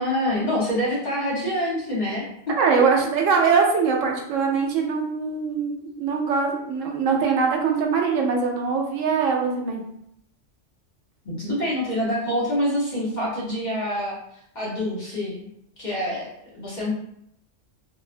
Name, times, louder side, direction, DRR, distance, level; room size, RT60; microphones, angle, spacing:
voice 1, 0.0-2.2 11.2-14.2 14.5-15.5 15.8-16.3 16.5-16.9, equal, 45° left, -6 dB, 0.8 m, -26 dB
voice 2, 2.6-9.8, right 5 dB, 90° right, 1 dB, 1.0 m, -22 dB
2.7 x 2.1 x 2.4 m, 0.75 s
omnidirectional pair, 1.3 m